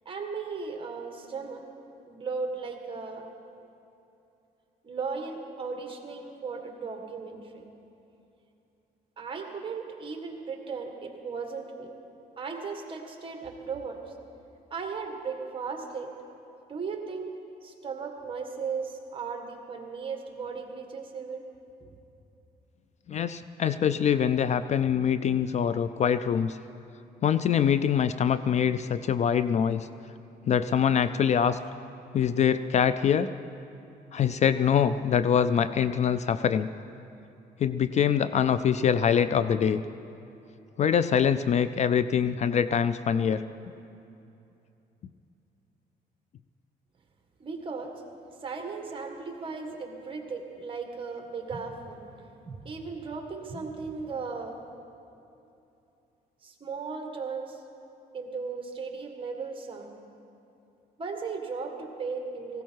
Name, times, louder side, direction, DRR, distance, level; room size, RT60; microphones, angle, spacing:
voice 1, 0.1-1.6 2.0-3.2 4.8-7.6 9.2-11.9 12.4-14.0 14.7-16.1 16.7-17.3 17.6-21.4 21.8-21.9 47.4-47.9 48.4-54.6 56.4-57.6 58.1-59.9 61.0-62.6, right 5 dB, 30° right, 3 dB, 1.8 m, -36 dB
voice 2, 23.1-26.6 27.2-29.9 30.5-31.6 32.1-33.3 34.1-36.7 37.6-39.8 40.8-43.4, left 8 dB, 45° left, 13 dB, 0.4 m, -24 dB
18.5 x 16.0 x 4.6 m, 2.8 s
cardioid pair, 130°, 17 cm